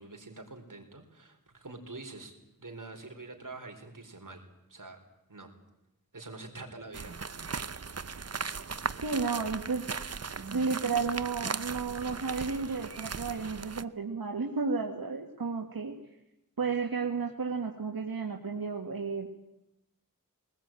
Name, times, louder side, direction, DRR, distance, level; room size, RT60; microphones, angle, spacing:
voice 1, 0.0-4.4 4.7-5.0 5.3-5.5 6.1-7.4, right 3 dB, 60° right, 4 dB, 4.4 m, -46 dB
sound 1, 6.9-13.8, right 5 dB, 45° right, 0.8 m, -38 dB
voice 2, 9.0-9.9 10.5-16.0 16.6-19.3, right 4 dB, 85° right, 2 dB, 1.8 m, -32 dB
22.0 x 19.5 x 9.0 m, 0.90 s
wide cardioid pair, 45°, 35 cm